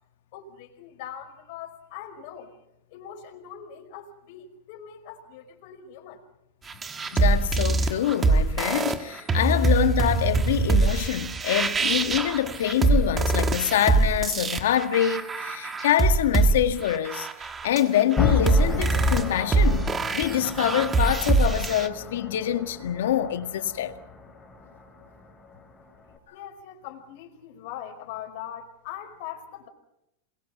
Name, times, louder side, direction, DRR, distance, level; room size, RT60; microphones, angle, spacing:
voice 1, 0.3-2.6 2.9-6.2 26.3-29.7, left 9 dB, 55° left, 5.3 m, -41 dB
sound 1, 6.7-21.9, right 3 dB, 15° right, 1.5 m, -24 dB
voice 2, 7.1-17.3 17.6-23.9, left 11 dB, 80° left, 1.7 m, -25 dB
sound 2, 18.2-26.2, left 5 dB, 10° left, 5.1 m, -32 dB
28.0 x 22.0 x 6.0 m
supercardioid pair, 150°, 0 cm